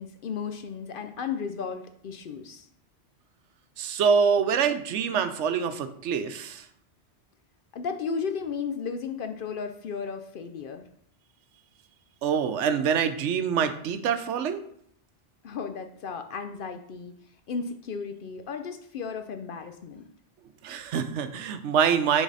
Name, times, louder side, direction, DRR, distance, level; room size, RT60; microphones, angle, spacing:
voice 1, 0.0-2.7 7.7-10.8 15.4-17.1 17.5-20.1, left 5 dB, 60° left, 7 dB, 0.6 m, -34 dB
voice 2, 3.8-6.7 12.2-14.6 20.6-22.2, right 7 dB, 85° right, 10 dB, 1.0 m, -25 dB
7.2 x 3.9 x 4.0 m, 0.66 s
omnidirectional pair, 1.2 m